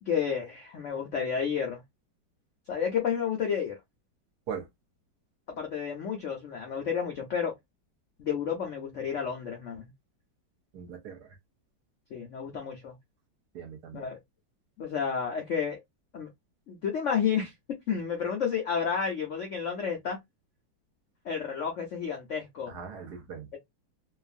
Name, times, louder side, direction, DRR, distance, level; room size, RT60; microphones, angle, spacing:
voice 1, 0.0-1.8 2.7-3.8 5.5-7.5 8.2-9.9 12.1-12.9 13.9-14.2 14.8-15.8 16.1-16.3 16.7-17.5 17.9-20.2 21.2-22.7, left 7 dB, 70° left, 0.7 m, -31 dB
voice 2, 10.7-11.4 13.5-14.1 22.7-23.5, right 7 dB, 65° right, 1.2 m, -40 dB
2.9 x 2.4 x 2.4 m
omnidirectional pair, 2.1 m